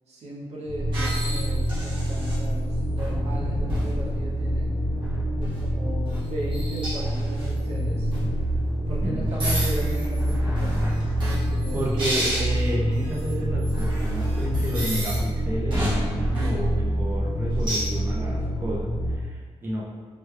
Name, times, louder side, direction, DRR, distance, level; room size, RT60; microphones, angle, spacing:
voice 1, 0.1-4.8 5.4-8.1 8.9-11.8, right 1 dB, 70° right, -4 dB, 0.7 m, -37 dB
sound 1, 0.7-19.2, equal, 45° left, 0.7 m, -26 dB
sound 2, 0.9-2.3 3.0-4.0 5.0-5.6 6.1-6.2 6.5-7.5 8.1-8.3 9.2-15.2 15.7-16.5 17.6-17.9, equal, 45° right, 0.9 m, -31 dB
voice 2, 9.0-9.7 11.1-11.2 11.7-19.8, right 1 dB, 20° right, -3 dB, 0.3 m, -32 dB
3.2 x 2.1 x 3.1 m, 1.5 s
wide cardioid pair, 175°, 11 cm